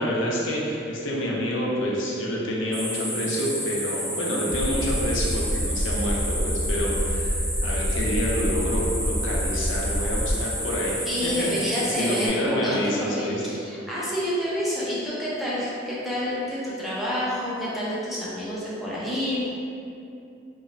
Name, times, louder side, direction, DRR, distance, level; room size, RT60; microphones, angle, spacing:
voice 1, 0.0-11.0 11.2-13.4, equal, 85° left, -4 dB, 0.5 m, -28 dB
sound 1, 2.7-12.3, equal, 20° right, 1.5 m, -31 dB
sound 2, 4.5-10.3, equal, 70° right, 0.6 m, -28 dB
voice 2, 11.0-19.4, equal, ahead, -9 dB, 0.4 m, -28 dB
2.9 x 2.0 x 2.4 m, 2.6 s
head